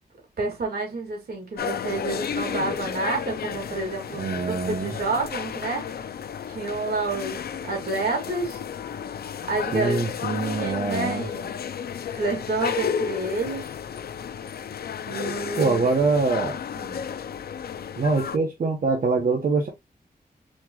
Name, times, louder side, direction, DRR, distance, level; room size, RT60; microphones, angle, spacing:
voice 1, 0.4-5.9 6.5-8.6 9.5-11.5 12.1-13.7 15.0-15.9 16.7-17.0, right 3 dB, 80° right, 2.3 m, -29 dB
sound 1, 1.6-18.4, left 8 dB, 80° left, 0.4 m, -32 dB
voice 2, 4.2-4.9 9.7-11.3 15.6-16.5 18.0-19.7, right 3 dB, 60° right, 1.1 m, -24 dB
4.4 x 3.5 x 2.9 m
wide cardioid pair, 155°, 16 cm